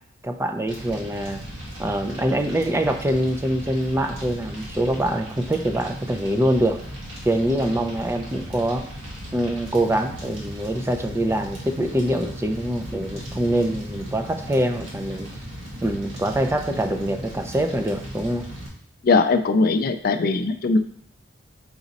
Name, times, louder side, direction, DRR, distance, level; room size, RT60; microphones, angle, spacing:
voice 1, 0.2-1.4 1.8-6.8 7.2-8.9 9.3-15.3 15.8-18.5, right 1 dB, 15° right, 5 dB, 0.4 m, -24 dB
Fire, 0.7-18.7, equal, 80° right, 1.6 m, -37 dB
voice 2, 19.0-20.8, left 3 dB, 50° left, 10 dB, 0.4 m, -20 dB
5.9 x 4.0 x 4.0 m, 0.63 s
head